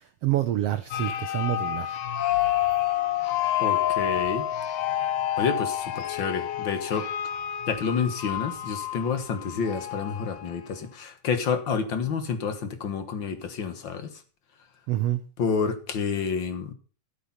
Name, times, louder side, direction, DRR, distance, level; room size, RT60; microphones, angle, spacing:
voice 1, 0.2-2.0 14.9-15.2, right 14 dB, 80° right, 10 dB, 1.4 m, -27 dB
sound 1, 0.9-10.7, left 12 dB, 80° left, 2.8 m, -29 dB
voice 2, 3.6-4.4 5.4-7.1 7.7-14.2 15.4-16.7, left 6 dB, 50° left, 9 dB, 1.6 m, -29 dB
14.0 x 8.4 x 5.7 m, 0.38 s
omnidirectional pair, 3.7 m